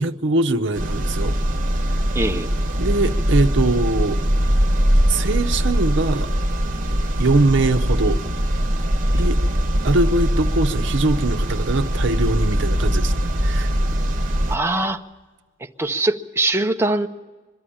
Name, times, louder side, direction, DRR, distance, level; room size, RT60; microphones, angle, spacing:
voice 1, 0.0-1.3 2.8-4.2 5.1-6.3 7.2-8.2 9.1-9.4 9.8-13.7, right 2 dB, 60° right, 0.8 m, -22 dB
sound 1, 0.7-14.6, equal, 40° right, 1.3 m, -21 dB
voice 2, 2.1-2.6 9.1-9.2 14.5-15.0 15.8-17.1, right 2 dB, 10° right, 0.7 m, -22 dB
22.5 x 13.0 x 10.0 m
head